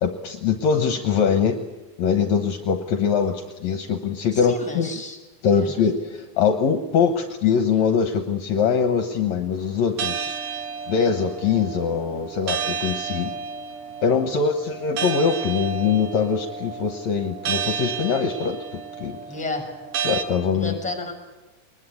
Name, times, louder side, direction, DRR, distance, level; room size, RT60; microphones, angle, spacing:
voice 1, 0.0-1.6 2.0-5.0 5.4-10.4 10.9-13.3 14.0-19.2 20.0-20.8, left 6 dB, 70° left, 7 dB, 2.2 m, -23 dB
voice 2, 4.3-5.2 5.4-5.7 14.3-14.6 19.3-19.7 20.5-21.1, left 3 dB, ahead, 5 dB, 5.4 m, -32 dB
sound 1, 10.0-20.2, right 7 dB, 60° right, 2.5 m, -31 dB
22.0 x 20.5 x 8.5 m, 1.2 s
omnidirectional pair, 3.6 m